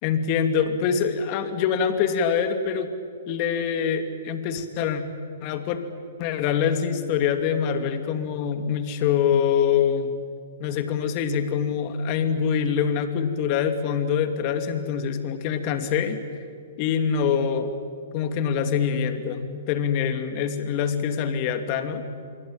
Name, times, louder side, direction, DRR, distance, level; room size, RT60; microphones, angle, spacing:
voice 1, 0.0-2.9 3.3-5.0 5.4-5.8 6.2-10.1 10.6-16.2 16.8-17.7 18.1-22.0, left 7 dB, 40° left, 8 dB, 2.7 m, -24 dB
27.0 x 23.5 x 9.0 m, 2.3 s
hypercardioid pair, 125°, 0 cm